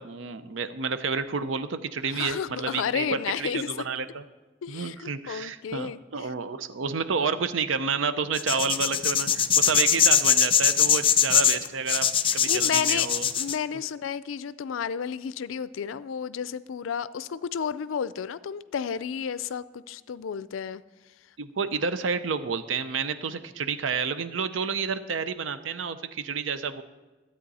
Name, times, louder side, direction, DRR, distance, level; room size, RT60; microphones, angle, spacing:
voice 1, 0.0-4.2 4.7-12.1 12.3-13.3 21.4-26.8, right 5 dB, 75° right, 11 dB, 0.6 m, -30 dB
voice 2, 2.1-3.7 4.6-6.3 12.2-13.1 13.4-20.8, left 7 dB, 85° left, 17 dB, 0.4 m, -32 dB
sound 1, 8.3-13.6, left 8 dB, 30° left, 0.5 m, -21 dB
13.0 x 8.7 x 4.1 m, 1.2 s
head